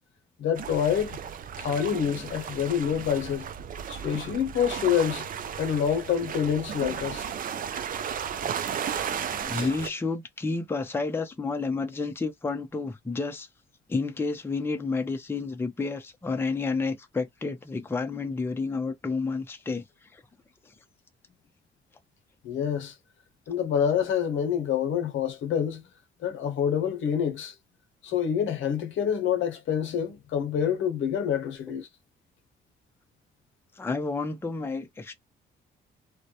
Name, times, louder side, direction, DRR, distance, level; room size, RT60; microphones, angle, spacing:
voice 1, 0.4-1.2 1.6-3.5 3.9-5.3 5.6-7.2 9.5-9.7 22.4-22.9 23.5-25.8 26.2-27.5 28.0-31.9, left 8 dB, 75° left, 0.7 m, -27 dB
sound 1, 0.5-9.9, right 8 dB, 45° right, 0.4 m, -34 dB
voice 2, 9.4-13.5 13.9-20.2 33.8-35.1, left 4 dB, 10° left, 0.5 m, -30 dB
2.1 x 2.1 x 2.7 m
cardioid pair, 90°, 20 cm